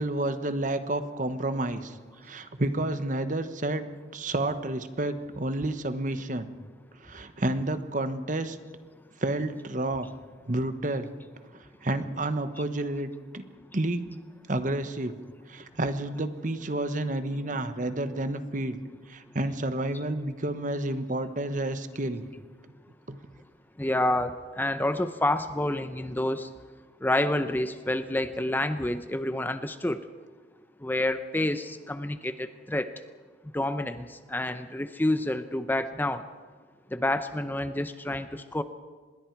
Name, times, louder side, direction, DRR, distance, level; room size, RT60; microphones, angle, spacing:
voice 1, 0.0-3.8 4.1-6.5 7.0-8.6 9.2-10.1 10.5-11.1 11.8-13.4 13.7-14.1 14.5-15.2 15.5-18.8 19.1-22.2 23.1-23.2, right 1 dB, 45° right, 10 dB, 1.2 m, -30 dB
voice 2, 23.8-26.5 27.0-30.0 30.8-32.9 33.5-36.2 36.9-38.6, left 1 dB, 10° left, 10 dB, 0.7 m, -28 dB
26.0 x 21.5 x 4.7 m, 1.5 s
head